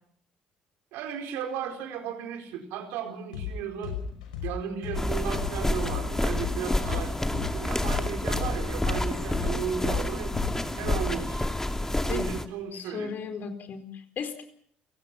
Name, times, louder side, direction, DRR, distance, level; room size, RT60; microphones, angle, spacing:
voice 1, 0.9-4.0 4.4-10.3 10.8-11.5 12.1-13.1, right 7 dB, 75° right, 5 dB, 4.4 m, -35 dB
sound 1, 3.3-3.5 3.8-7.5 7.8-11.3, left 10 dB, 90° left, 5.6 m, -35 dB
sound 2, 4.9-12.5, left 1 dB, 10° left, 2.6 m, -29 dB
voice 2, 12.7-14.4, left 6 dB, 55° left, 8 dB, 4.3 m, -36 dB
29.0 x 18.0 x 6.0 m, 0.64 s
hypercardioid pair, 55°, 4 cm